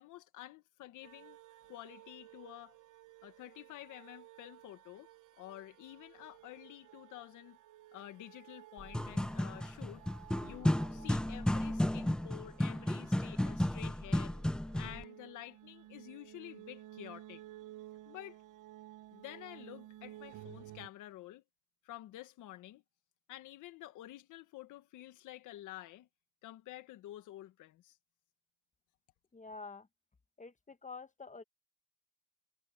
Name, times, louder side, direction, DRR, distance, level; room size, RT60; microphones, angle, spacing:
voice 1, 0.0-1.4 1.7-2.7 3.2-5.1 5.4-7.6 7.9-10.1 10.4-14.4 14.7-17.4 18.0-18.4 19.1-21.4 21.8-22.8 23.3-26.1 26.4-28.0, left 14 dB, 90° left, 1.6 m, -50 dB
sound 1, 1.0-20.9, right 15 dB, 85° right, 0.9 m, -55 dB
sound 2, 8.8-15.0, left 1 dB, 5° left, 0.4 m, -33 dB
voice 2, 29.3-29.9 30.4-31.4, left 4 dB, 25° left, 1.4 m, -48 dB
cardioid pair, 90°, 30 cm